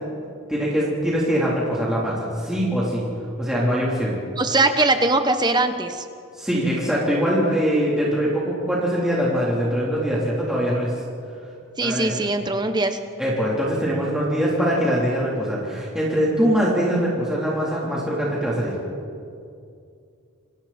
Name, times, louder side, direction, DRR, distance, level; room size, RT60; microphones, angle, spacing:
voice 1, 0.5-3.1 3.4-4.1 6.4-10.9 11.8-12.2 13.2-18.7, equal, 5° right, -7 dB, 3.7 m, -22 dB
voice 2, 4.4-6.0 11.8-13.0, right 2 dB, 20° right, 7 dB, 1.1 m, -21 dB
29.0 x 26.0 x 4.4 m, 2.4 s
head